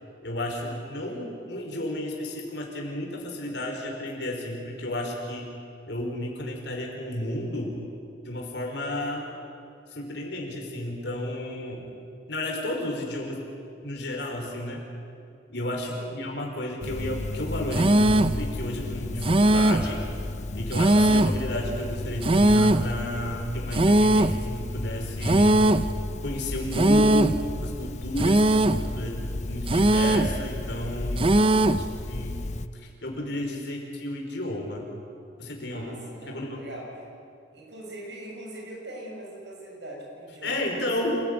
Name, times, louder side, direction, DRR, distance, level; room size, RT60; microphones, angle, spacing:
voice 1, 0.2-5.5 5.9-7.8 8.2-9.3 9.9-11.8 12.3-13.4 13.8-14.8 15.5-20.0 20.5-25.6 26.2-29.2 29.5-32.4 32.7-34.9 35.4-35.9 36.3-36.7 40.4-41.2, left 1 dB, 65° left, 1 dB, 5.0 m, -32 dB
voice 2, 0.9-1.3 15.9-16.2 31.3-32.0 35.6-37.1 37.5-40.7, right 1 dB, 70° right, -1 dB, 7.0 m, -42 dB
sound 1, 16.8-32.7, left 2 dB, 40° left, 0.7 m, -34 dB
sound 2, 17.7-18.4 19.2-19.9 20.7-21.4 22.2-22.9 23.7-24.4 25.2-25.9 26.7-27.4 28.2-28.9 29.7-30.4 31.2-31.9, right 1 dB, 30° right, 0.6 m, -20 dB
28.0 x 15.5 x 9.7 m, 2.5 s
head